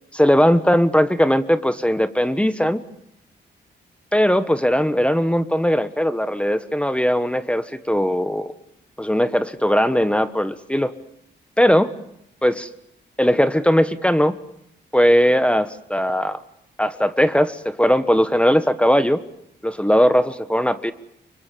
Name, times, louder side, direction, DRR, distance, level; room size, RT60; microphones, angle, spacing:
voice 1, 0.1-2.8 4.1-8.5 9.0-10.9 11.6-11.9 12.4-12.7 13.2-14.3 14.9-16.4 16.8-19.2 19.6-20.9, equal, 5° left, 12 dB, 1.3 m, -19 dB
25.5 x 23.0 x 6.9 m, 0.79 s
cardioid pair, 80°, 19 cm